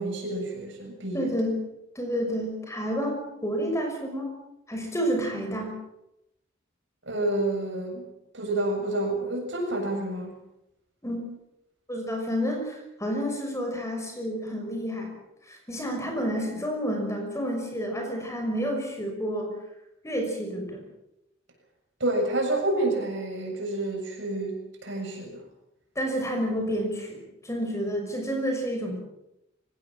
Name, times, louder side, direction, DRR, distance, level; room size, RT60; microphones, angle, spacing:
voice 1, 0.0-1.3 7.1-8.0 8.3-10.4 22.0-24.5 24.8-25.4, right 2 dB, 65° right, 2 dB, 7.3 m, -28 dB
voice 2, 1.1-1.6 1.9-4.3 4.7-5.7 11.0-11.2 11.9-15.1 15.5-19.5 20.0-20.8 26.0-29.0, equal, 15° left, 3 dB, 6.0 m, -29 dB
24.0 x 18.0 x 7.5 m, 0.88 s
head